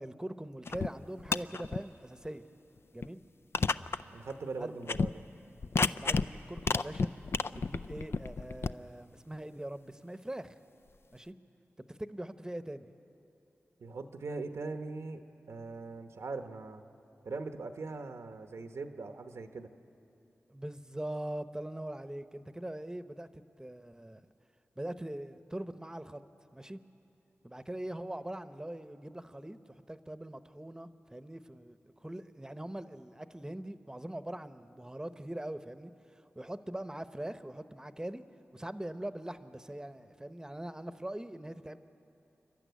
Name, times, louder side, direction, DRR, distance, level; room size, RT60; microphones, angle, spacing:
voice 1, 0.0-2.4 2.9-3.2 4.5-4.8 6.0-7.1 7.5-10.5 11.1-11.3 11.9-12.9 20.5-24.2 24.8-26.2 26.5-26.8 27.4-35.9 36.3-38.2 38.5-41.8, right 1 dB, 15° right, 11 dB, 0.9 m, -42 dB
sound 1, 0.7-0.9 1.2-1.8 2.3-2.4 3.0-3.1 3.5-4.0 4.3-4.4 4.8-5.1 5.6-6.3 6.6-8.7, left 4 dB, 60° left, 0.5 m, -31 dB
voice 2, 4.1-5.1 13.8-15.2 15.5-16.8 17.2-19.7, right 3 dB, 85° right, 7 dB, 1.1 m, -40 dB
29.0 x 12.0 x 9.4 m, 2.9 s
cardioid pair, 50°, 5 cm